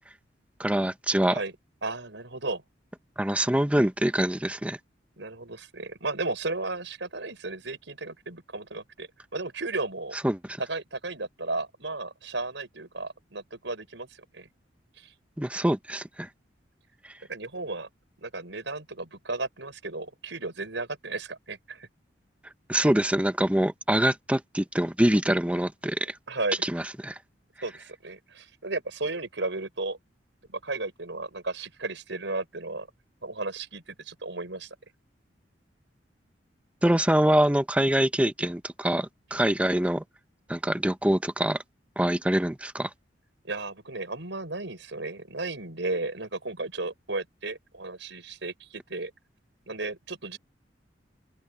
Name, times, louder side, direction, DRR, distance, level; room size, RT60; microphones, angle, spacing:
voice 1, 0.6-1.4 3.2-4.8 10.2-10.4 15.4-16.3 22.7-26.1 26.6-27.1 36.8-40.0 40.5-41.6 42.0-42.9, right 1 dB, 5° right, 0.8 m, -24 dB
voice 2, 1.8-2.6 5.2-10.2 10.7-14.1 14.3-14.5 15.0-15.1 17.3-17.9 18.2-21.9 26.3-26.6 27.6-30.0 30.5-32.9 33.2-34.7 43.4-49.1 49.7-50.4, right 3 dB, 80° right, 5.0 m, -34 dB
open air
head